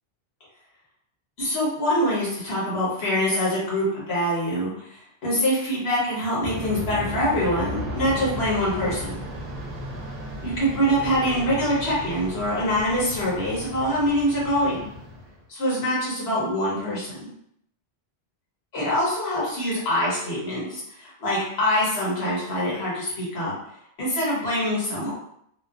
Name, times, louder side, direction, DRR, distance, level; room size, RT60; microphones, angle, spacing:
voice 1, 1.4-9.2 10.4-14.8 15.5-17.3 18.7-23.5 24.0-25.1, equal, 70° left, -6 dB, 1.3 m, -24 dB
Aircraft, 6.4-15.4, equal, 70° right, 0.8 m, -35 dB
2.9 x 2.0 x 2.3 m, 0.72 s
omnidirectional pair, 1.1 m